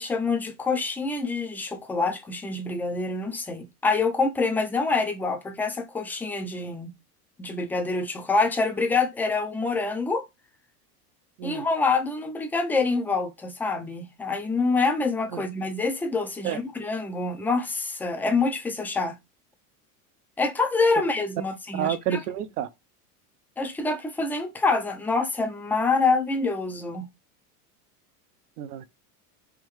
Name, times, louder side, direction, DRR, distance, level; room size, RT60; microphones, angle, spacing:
voice 1, 0.0-6.9 7.4-10.2 11.4-19.2 20.4-22.2 23.6-27.1, left 3 dB, 5° left, 0.3 m, -26 dB
voice 2, 21.7-22.7 28.6-28.8, right 10 dB, 85° right, 0.7 m, -29 dB
3.6 x 2.6 x 3.0 m
supercardioid pair, 105°, 45 cm